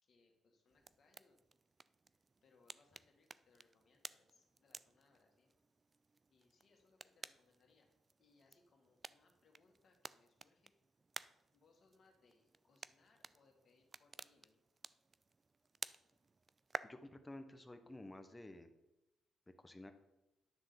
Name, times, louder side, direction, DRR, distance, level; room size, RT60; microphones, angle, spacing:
voice 1, 0.0-1.4 2.4-5.5 6.3-7.9 8.2-10.7 11.5-14.6, left 3 dB, 55° left, 2 dB, 2.0 m, -73 dB
sound 1, 0.7-16.8, right 4 dB, 35° right, 0.3 m, -54 dB
voice 2, 16.8-18.7 19.6-19.9, left 1 dB, 20° left, 8 dB, 1.1 m, -52 dB
10.0 x 3.7 x 6.9 m, 0.96 s
supercardioid pair, 65°, 0 cm